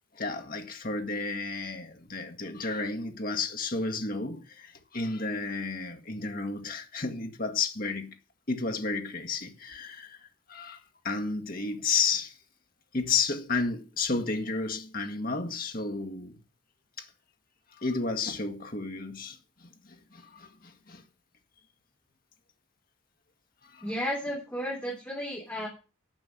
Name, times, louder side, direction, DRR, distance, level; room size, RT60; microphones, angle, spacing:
voice 1, 0.1-8.1 8.5-12.4 12.9-16.4 17.0-17.1 17.7-21.0 23.6-23.8, left 4 dB, 45° left, 1.7 m, -32 dB
voice 2, 23.8-25.7, equal, 10° left, 3.3 m, -33 dB
10.5 x 6.0 x 7.7 m
head